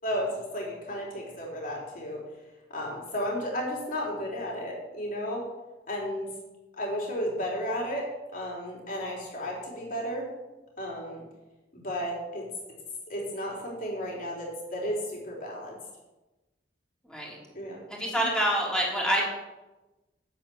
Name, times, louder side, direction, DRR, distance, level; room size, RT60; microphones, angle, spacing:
voice 1, 0.0-2.2 2.7-5.4 5.9-6.3 6.7-8.1 8.3-10.3 10.8-11.2 11.7-12.5 13.1-15.8 17.5-17.8 18.1-18.3, equal, 50° left, -2 dB, 3.8 m, -33 dB
voice 2, 17.1-17.4 17.9-19.3, equal, 5° left, -3 dB, 3.4 m, -26 dB
9.5 x 8.5 x 7.1 m, 1.1 s
head